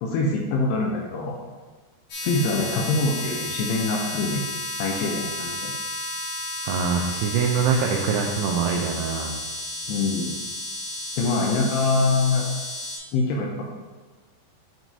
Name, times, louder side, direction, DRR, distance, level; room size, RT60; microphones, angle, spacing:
voice 1, 0.0-1.4 2.2-4.4 4.8-5.7 9.9-10.3 11.2-12.5 13.1-13.6, left 3 dB, 80° left, -1 dB, 2.4 m, -24 dB
sound 1, 2.1-13.0, left 1 dB, 60° left, 2.6 m, -32 dB
voice 2, 6.6-9.3, right 6 dB, 90° right, 1 dB, 2.3 m, -24 dB
8.1 x 4.5 x 2.7 m, 1.3 s
omnidirectional pair, 5.2 m